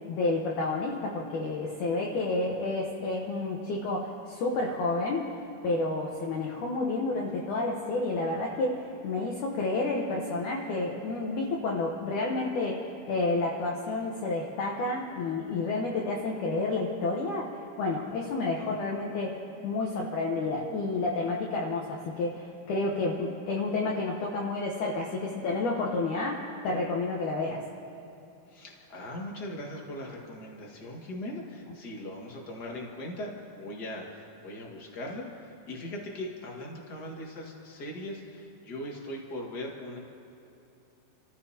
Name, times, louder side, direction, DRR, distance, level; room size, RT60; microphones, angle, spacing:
voice 1, 0.1-5.3 5.6-19.3 19.6-27.6, left 3 dB, 65° left, -2 dB, 2.1 m, -30 dB
voice 2, 28.5-40.0, left 1 dB, 40° left, -1 dB, 1.5 m, -40 dB
29.0 x 15.0 x 2.9 m, 2.8 s
omnidirectional pair, 4.6 m